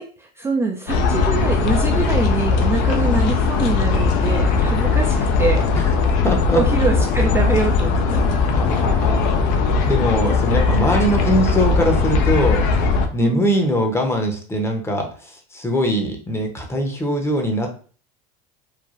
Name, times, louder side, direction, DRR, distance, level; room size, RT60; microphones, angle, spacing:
voice 1, 0.0-5.7 6.5-8.3 13.2-13.7, right 4 dB, 15° right, 2 dB, 0.3 m, -24 dB
sound 1, 0.9-13.1, left 4 dB, 60° left, 0.5 m, -19 dB
voice 2, 6.2-6.6 8.5-9.6 9.9-12.6 13.1-17.7, equal, 15° left, 3 dB, 0.7 m, -22 dB
3.1 x 2.2 x 2.4 m, 0.42 s
hypercardioid pair, 90°, 19 cm